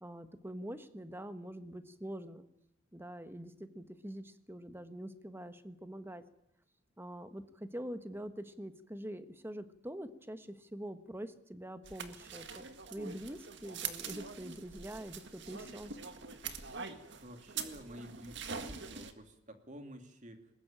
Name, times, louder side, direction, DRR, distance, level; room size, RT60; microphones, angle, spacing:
voice 1, 0.0-2.4 2.9-6.2 7.0-15.9, right 1 dB, 10° right, 10 dB, 1.4 m, -45 dB
sound 1, 11.8-19.1, right 6 dB, 60° right, 1.9 m, -44 dB
voice 2, 17.2-20.5, equal, 40° right, 6 dB, 2.6 m, -50 dB
21.0 x 20.5 x 8.9 m, 0.82 s
head